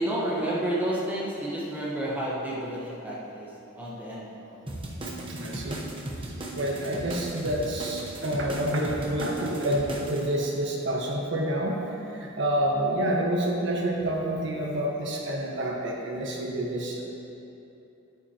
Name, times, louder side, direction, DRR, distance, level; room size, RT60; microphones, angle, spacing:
voice 1, 0.0-3.5 3.8-4.3, right 1 dB, 10° right, -7 dB, 1.2 m, -30 dB
sound 1, 4.7-10.2, right 1 dB, 25° right, 1.0 m, -37 dB
voice 2, 5.0-5.8 6.2-17.0, right 1 dB, 60° right, -2 dB, 1.4 m, -28 dB
10.5 x 9.2 x 3.0 m, 2.9 s
head